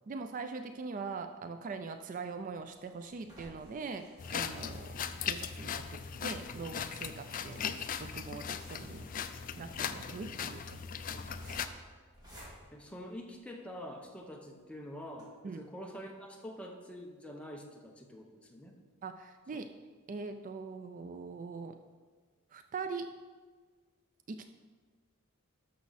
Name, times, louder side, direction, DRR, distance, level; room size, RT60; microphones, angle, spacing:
voice 1, 0.1-7.6 8.0-9.1 9.6-10.8 11.1-11.7 15.4-15.6 19.0-19.7 20.1-21.8 22.5-23.1 24.3-24.5, right 4 dB, 40° right, 8 dB, 0.3 m, -42 dB
sound 1, 2.3-13.7 14.2-14.3 14.6-14.7 15.1-15.2, equal, 20° right, 2.6 m, -57 dB
sound 2, 4.2-11.7, left 7 dB, 40° left, 0.4 m, -39 dB
voice 2, 12.7-18.8 19.5-19.6, equal, 5° left, 0 dB, 0.9 m, -46 dB
12.0 x 6.3 x 4.1 m, 1.5 s
head